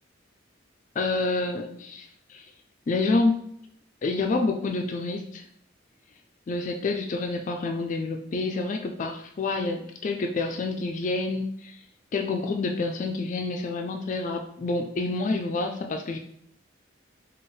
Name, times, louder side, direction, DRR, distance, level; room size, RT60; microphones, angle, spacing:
voice 1, 1.0-2.5 2.9-3.4 4.0-5.4 6.5-11.8 12.1-16.2, left 3 dB, 40° left, 4 dB, 0.3 m, -28 dB
4.4 x 2.3 x 3.1 m, 0.69 s
head